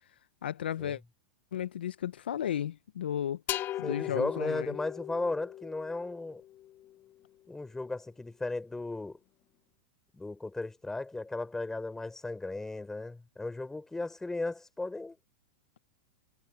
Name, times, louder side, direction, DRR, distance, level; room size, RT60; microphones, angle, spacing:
voice 1, 0.4-1.0 1.5-3.4 3.8-4.7, left 10 dB, 80° left, 0.9 m, -34 dB
sound 1, 3.5-7.1, left 13 dB, 35° left, 1.2 m, -39 dB
voice 2, 3.8-6.4 7.5-9.2 10.1-15.2, left 2 dB, 10° left, 3.9 m, -36 dB
hypercardioid pair, 105°, 5 cm